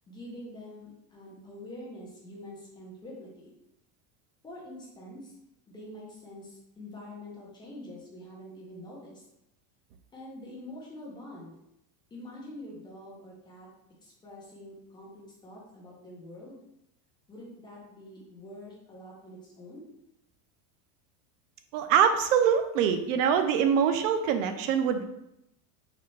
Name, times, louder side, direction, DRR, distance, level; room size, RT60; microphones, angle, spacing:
voice 1, 0.1-3.5 4.4-5.4 5.7-9.2 10.1-11.5 12.1-13.7 14.0-16.6 17.3-19.9, left 1 dB, 10° left, -4 dB, 0.6 m, -45 dB
voice 2, 21.7-25.0, right 7 dB, 65° right, 8 dB, 0.5 m, -24 dB
4.1 x 3.2 x 3.1 m, 0.83 s
supercardioid pair, 170°, 42 cm